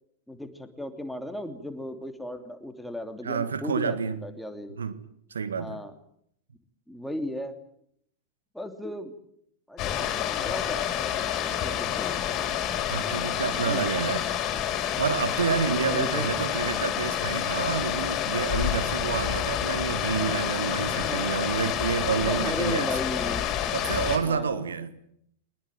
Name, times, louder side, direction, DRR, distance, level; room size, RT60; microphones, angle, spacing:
voice 1, 0.3-4.8 5.6-5.9 6.9-7.6 8.5-9.1 9.7-11.3 11.6-12.4 13.6-13.9 15.7-16.3 21.0-21.4 22.3-23.5 24.2-24.6, left 1 dB, ahead, 2.9 m, -36 dB
voice 2, 3.2-4.2 4.8-5.0 5.3-5.8 12.9-14.3 15.0-22.9 23.7-24.9, right 6 dB, 70° right, 1.7 m, -29 dB
sound 1, 9.8-24.2, left 10 dB, 35° left, 5.3 m, -28 dB
23.5 x 20.5 x 9.2 m
figure-of-eight pair, 90°, 0 cm